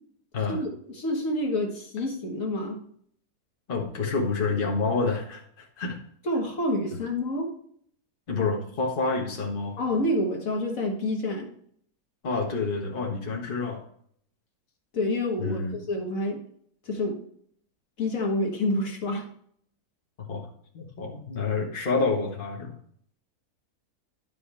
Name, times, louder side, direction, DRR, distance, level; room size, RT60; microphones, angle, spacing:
voice 1, 0.5-2.8 6.2-7.5 9.8-11.5 14.9-16.4 16.9-17.2 18.0-19.3, left 1 dB, 60° left, 1 dB, 1.9 m, -28 dB
voice 2, 3.7-6.0 8.3-9.8 12.2-13.8 15.4-15.7 20.3-20.4 20.7-22.7, left 4 dB, 35° left, 0 dB, 1.5 m, -28 dB
10.5 x 5.7 x 3.4 m, 0.63 s
omnidirectional pair, 1.6 m